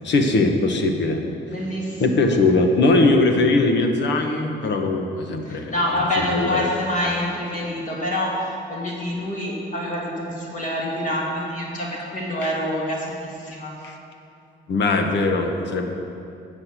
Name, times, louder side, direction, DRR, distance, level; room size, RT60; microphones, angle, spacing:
voice 1, 0.0-1.2 2.0-5.7 6.2-6.7 12.4-12.5 13.8-13.9 14.7-15.9, left 2 dB, 65° left, 4 dB, 1.2 m, -20 dB
voice 2, 1.5-2.3 5.4-13.8, left 1 dB, 40° left, -4 dB, 2.1 m, -26 dB
9.8 x 6.4 x 7.5 m, 2.6 s
cardioid pair, 90°, 20 cm